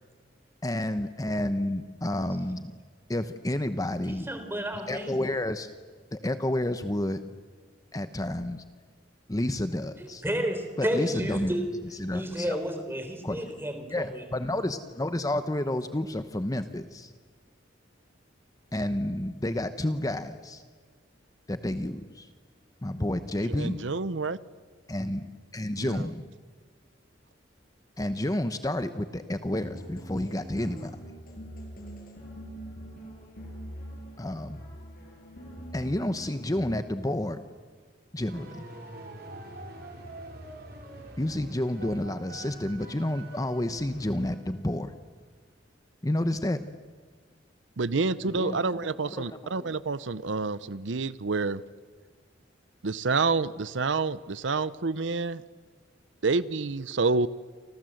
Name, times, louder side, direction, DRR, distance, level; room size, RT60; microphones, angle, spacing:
voice 1, 0.6-2.7 3.1-4.3 4.9-5.7 6.1-7.2 7.9-8.6 9.3-10.2 10.8-11.5 12.0-12.6 13.2-13.4 13.9-17.1 18.7-20.6 21.5-22.3 22.8-23.8 24.9-26.2 28.0-30.9 34.2-34.6 35.7-37.4 38.1-38.5 41.2-44.9 46.0-46.6 48.2-48.6 48.9-49.7, left 1 dB, 20° left, 10 dB, 0.9 m, -30 dB
voice 2, 4.1-5.2 10.0-11.7 12.1-14.2, equal, 15° right, 7 dB, 3.9 m, -31 dB
voice 3, 23.5-24.4 25.8-26.1 47.8-51.6 52.8-55.4 56.2-57.3, right 4 dB, 85° right, 16 dB, 0.8 m, -28 dB
sound 1, 29.6-36.7, equal, 50° left, 7.8 m, -43 dB
sound 2, 38.3-44.8, right 2 dB, 60° right, 5.4 m, -45 dB
29.0 x 25.5 x 7.9 m, 1.5 s
head